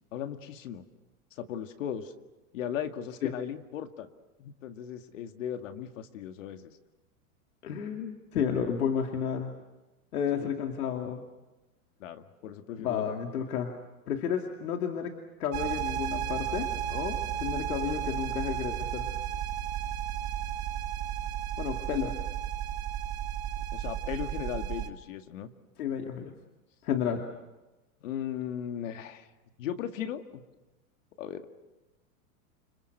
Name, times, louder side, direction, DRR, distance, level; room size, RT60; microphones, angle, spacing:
voice 1, 0.1-0.8 1.4-2.1 2.5-4.1 4.4-6.7 10.4-10.5 12.0-13.2 23.7-25.5 28.0-29.3 29.6-30.4 31.2-31.5, left 9 dB, 60° left, 7 dB, 2.0 m, -37 dB
voice 2, 7.6-9.5 10.1-11.2 12.8-13.8 14.1-15.1 15.4-19.1 21.6-22.1 25.8-26.3 26.8-27.2, left 8 dB, 85° left, 3 dB, 2.7 m, -31 dB
sound 1, 15.5-24.9, right 10 dB, 20° right, 1.2 m, -33 dB
29.5 x 26.5 x 6.7 m, 1.1 s
supercardioid pair, 170°, 43 cm